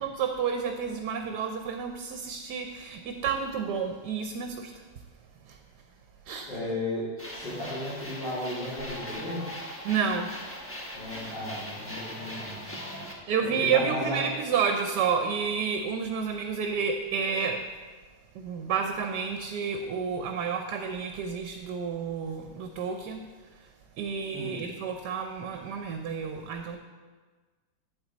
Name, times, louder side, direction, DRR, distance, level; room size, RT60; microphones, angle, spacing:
voice 1, 0.0-4.7 5.4-5.6 6.3-6.5 9.8-10.3 13.3-17.6 18.3-23.3 24.0-26.8, right 6 dB, 75° right, 5 dB, 1.2 m, -30 dB
voice 2, 6.5-9.4 10.9-13.1 13.4-14.2 24.3-24.6, left 1 dB, 85° left, -15 dB, 4.0 m, -35 dB
sound 1, 7.2-13.1, equal, 10° left, 0.8 m, -40 dB
8.4 x 8.1 x 3.9 m, 1.4 s
omnidirectional pair, 1.9 m